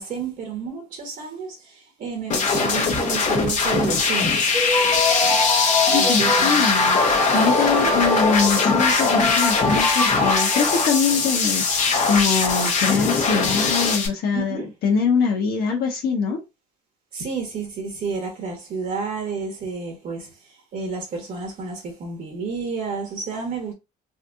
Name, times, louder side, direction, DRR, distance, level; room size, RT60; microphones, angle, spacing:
voice 1, 0.0-4.5 5.9-6.7 7.6-8.0 14.3-14.7 17.1-23.7, right 4 dB, 55° right, 1.7 m, -31 dB
sound 1, 2.3-14.1, left 4 dB, 45° left, 1.2 m, -21 dB
sound 2, 4.5-11.4, left 2 dB, 15° left, 1.0 m, -24 dB
voice 2, 5.9-7.0 7.3-16.4, left 5 dB, 65° left, 1.1 m, -23 dB
4.1 x 2.6 x 2.7 m
cardioid pair, 110°, 17 cm